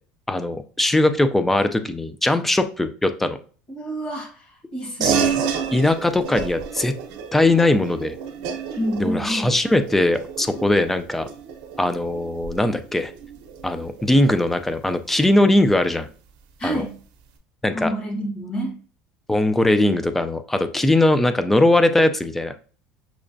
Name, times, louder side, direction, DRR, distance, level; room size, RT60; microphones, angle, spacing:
voice 1, 0.3-3.4 5.0-5.1 5.7-6.9 7.3-8.1 9.0-11.3 11.8-13.1 13.6-16.1 16.6-16.8 17.6-17.9 19.3-22.5, left 1 dB, 5° left, 9 dB, 0.3 m, -20 dB
voice 2, 3.7-5.4 8.8-9.5 16.6-17.0 17.7-18.8, equal, 25° left, 1 dB, 1.3 m, -28 dB
sound 1, 5.0-14.9, right 7 dB, 85° right, 0.7 m, -30 dB
5.8 x 2.2 x 2.5 m, 0.41 s
cardioid pair, 135°, 3 cm